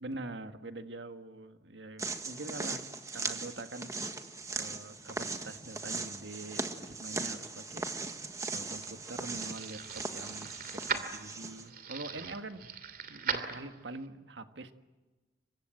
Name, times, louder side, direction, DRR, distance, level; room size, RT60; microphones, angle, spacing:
voice 1, 0.0-2.8 3.1-3.9 4.5-7.9 8.5-12.7 13.1-14.7, right 2 dB, 80° right, 8 dB, 1.7 m, -44 dB
sound 1, 2.0-11.7, right 3 dB, 20° right, 1.6 m, -39 dB
sound 2, 8.1-14.1, right 6 dB, 55° right, 2.8 m, -40 dB
29.5 x 24.5 x 7.8 m, 1.2 s
head